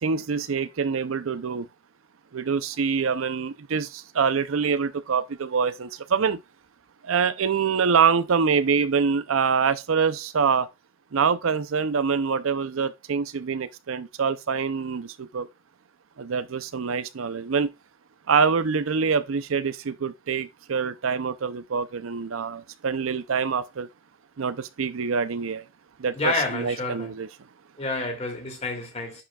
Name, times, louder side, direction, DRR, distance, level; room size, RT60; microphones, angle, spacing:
voice 1, 0.0-1.7 2.3-6.4 7.0-10.7 11.1-15.5 16.2-17.7 18.3-23.9 24.4-25.6 26.0-27.3, right 6 dB, 90° right, 0.5 m, -25 dB
voice 2, 26.1-27.1 27.8-29.2, left 3 dB, 35° left, 2.7 m, -29 dB
10.0 x 5.7 x 2.3 m
head